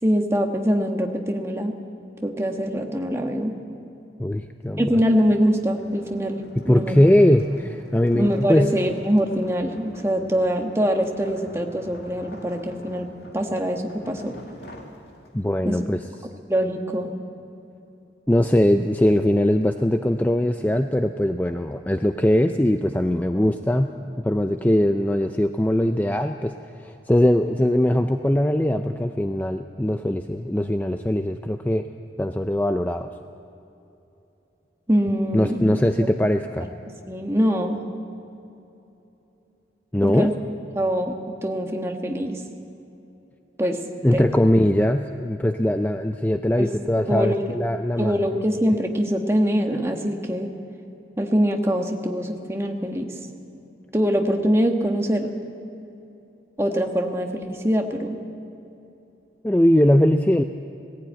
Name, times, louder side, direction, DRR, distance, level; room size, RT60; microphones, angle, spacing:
voice 1, 0.0-1.8 2.2-3.5 4.8-7.0 8.1-13.1 13.3-14.4 15.6-15.8 16.2-17.1 34.9-36.1 37.1-37.8 40.0-40.3 40.7-42.4 43.6-43.8 44.1-44.3 46.6-46.7 47.1-47.4 48.0-50.5 51.2-53.1 53.9-55.3 56.6-58.2, equal, 15° right, 3 dB, 1.3 m, -23 dB
voice 2, 4.2-4.9 6.6-8.7 15.3-16.0 18.3-23.9 24.2-26.5 26.8-31.9 32.2-33.1 35.3-36.7 39.9-40.3 44.0-48.1 59.4-60.4, left 1 dB, 10° left, 7 dB, 0.4 m, -21 dB
sound 1, 4.6-15.6, left 1 dB, 60° left, 2.2 m, -46 dB
18.5 x 15.5 x 9.1 m, 2.9 s
head